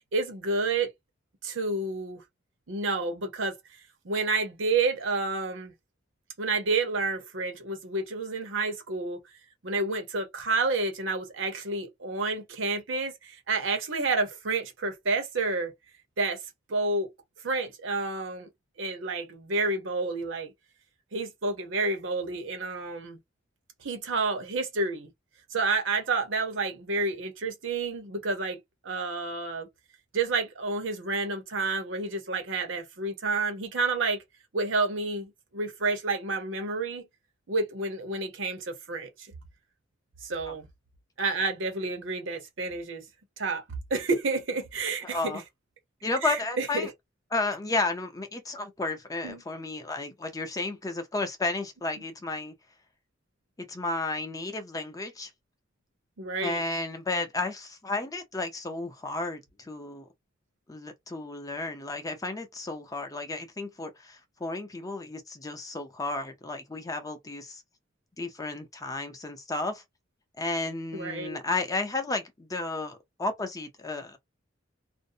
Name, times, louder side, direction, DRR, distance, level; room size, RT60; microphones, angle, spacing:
voice 1, 0.1-0.9 1.4-2.2 2.7-3.5 4.0-5.7 6.4-9.2 9.6-15.7 16.2-16.4 16.7-17.1 17.4-18.5 18.8-20.5 21.1-23.2 23.8-25.1 25.5-29.7 30.1-34.2 34.5-37.1 37.5-39.3 40.2-40.7 41.2-43.1 43.4-43.6 43.9-45.2 46.2-46.9 49.2-49.4 56.2-56.6 70.9-71.4, right 3 dB, 80° right, 0.8 m, -29 dB
voice 2, 45.0-45.4 46.0-46.9 47.3-52.5 53.6-55.3 56.4-60.1 60.7-67.6 68.2-69.8 70.4-74.2, left 2 dB, 20° left, 0.5 m, -33 dB
2.5 x 2.0 x 2.6 m
head